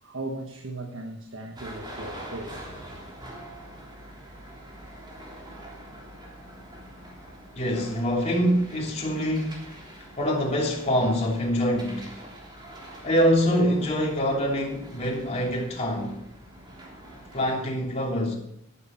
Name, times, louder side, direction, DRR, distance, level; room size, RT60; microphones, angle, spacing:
voice 1, 0.0-2.7 6.2-6.4, right 2 dB, 75° right, 1.3 m, -37 dB
sound 1, 1.6-17.6, right 1 dB, 25° right, 3.3 m, -44 dB
voice 2, 7.5-9.7 10.2-12.1 13.0-16.2 17.3-18.4, equal, 35° left, 3.1 m, -25 dB
11.5 x 11.0 x 4.5 m
head